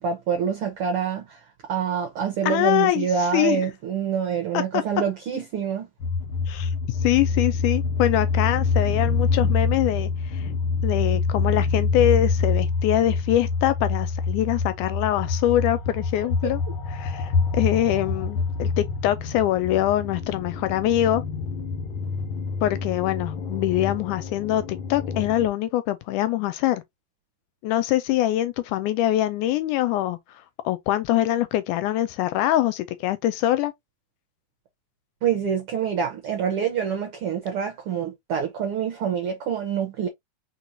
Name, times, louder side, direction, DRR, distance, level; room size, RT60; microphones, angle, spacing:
voice 1, 0.0-1.4 1.7-5.9 35.2-40.1, right 7 dB, 75° right, 1.3 m, -26 dB
voice 2, 2.4-3.7 4.7-4.8 6.5-10.5 10.8-16.6 16.9-21.2 22.6-26.8 27.6-30.2 30.7-33.7, left 13 dB, 80° left, 1.9 m, -24 dB
sound 1, 6.0-25.5, left 4 dB, 55° left, 1.6 m, -26 dB
4.5 x 4.4 x 2.6 m
omnidirectional pair, 3.8 m